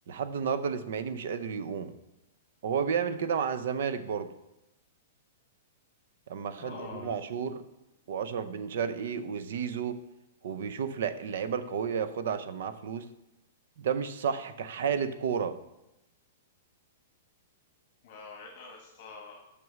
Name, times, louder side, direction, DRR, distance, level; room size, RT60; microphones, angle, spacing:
voice 1, 0.1-1.9 2.6-4.3 6.3-7.6 8.1-10.0 10.4-13.1 13.8-15.6, right 7 dB, 65° right, 12 dB, 0.6 m, -32 dB
voice 2, 6.5-7.2 18.0-19.4, left 4 dB, 45° left, 1 dB, 1.2 m, -45 dB
6.2 x 6.0 x 6.0 m, 0.91 s
hypercardioid pair, 160°, 0 cm